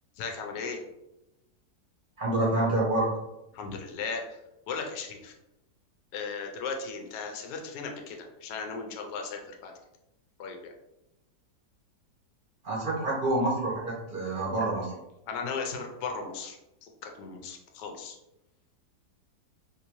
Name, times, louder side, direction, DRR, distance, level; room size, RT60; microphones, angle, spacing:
voice 1, 0.2-0.8 3.5-4.2 4.7-5.3 6.1-9.7 10.4-10.7 15.3-18.2, left 5 dB, 75° left, 3 dB, 1.2 m, -36 dB
voice 2, 2.2-3.1 12.6-14.9, right 2 dB, 40° right, -5 dB, 0.9 m, -27 dB
3.3 x 2.7 x 2.9 m, 0.91 s
omnidirectional pair, 1.8 m